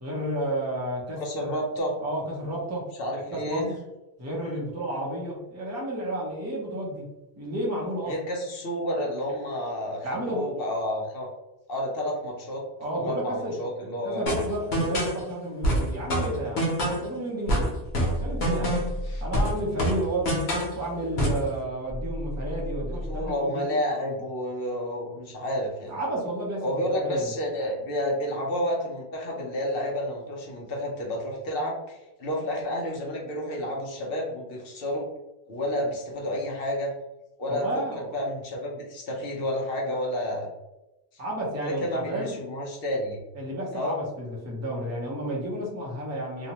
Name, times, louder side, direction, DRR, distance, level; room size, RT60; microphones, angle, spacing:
voice 1, 0.0-1.6 2.0-2.9 3.3-3.6 4.2-7.1 7.4-8.2 10.0-10.5 12.8-13.6 13.8-16.7 17.0-17.8 18.2-18.8 19.2-23.7 25.9-27.3 37.5-38.2 41.2-42.4 43.4-46.5, right 1 dB, 20° right, -3 dB, 0.6 m, -32 dB
voice 2, 1.2-1.9 3.0-3.7 8.1-11.3 11.7-12.6 12.9-14.4 19.0-19.2 22.9-26.0 26.6-35.1 35.5-36.9 37.4-37.8 38.1-40.5 41.6-43.2 43.7-44.0, equal, 65° left, -1 dB, 0.8 m, -30 dB
sound 1, 14.3-15.2 15.6-17.1 17.5-19.0 19.3-20.8 21.2-21.5, equal, 90° left, 1.0 m, -26 dB
sound 2, 17.9-19.3 19.9-23.3, equal, 5° left, 0.8 m, -35 dB
2.7 x 2.1 x 2.8 m, 0.98 s
omnidirectional pair, 1.1 m